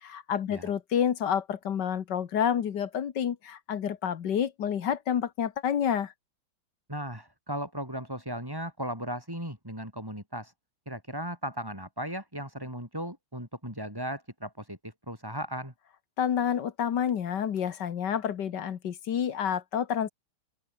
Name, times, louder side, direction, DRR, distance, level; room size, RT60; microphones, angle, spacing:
voice 1, 0.0-6.1 16.2-20.1, left 8 dB, 60° left, 1.8 m, -29 dB
voice 2, 6.9-10.5 10.9-15.7, equal, 10° right, 7.3 m, -36 dB
open air
omnidirectional pair, 2.3 m